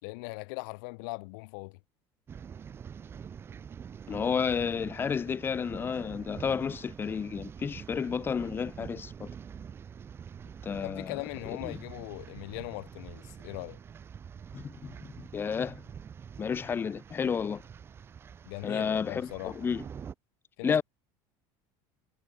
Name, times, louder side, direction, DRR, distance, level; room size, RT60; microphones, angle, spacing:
voice 1, 0.0-1.8 10.8-13.8 18.5-19.6 20.6-20.8, left 30 dB, 80° left, 2.3 m, -40 dB
sound 1, 2.3-20.1, right 7 dB, 25° right, 1.1 m, -46 dB
voice 2, 4.1-9.3 10.6-11.2 11.6-11.8 14.5-15.8 16.4-17.6 18.6-19.8 20.6-20.8, left 6 dB, 20° left, 1.5 m, -31 dB
cardioid pair, 160°, 10 cm